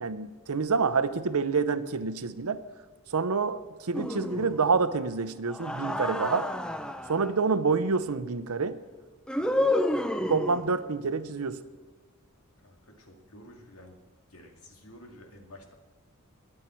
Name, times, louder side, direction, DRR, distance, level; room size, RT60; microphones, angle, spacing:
voice 1, 0.0-2.6 3.1-6.5 7.1-8.8 10.3-11.6, right 4 dB, 85° right, 14 dB, 0.7 m, -27 dB
sound 1, 3.9-4.8 5.5-7.3 9.3-10.8, left 1 dB, 5° left, 0.5 m, -30 dB
voice 2, 12.6-14.0 14.3-15.7, left 1 dB, 75° left, 2 dB, 2.3 m, -51 dB
21.5 x 7.6 x 4.5 m, 1.4 s
head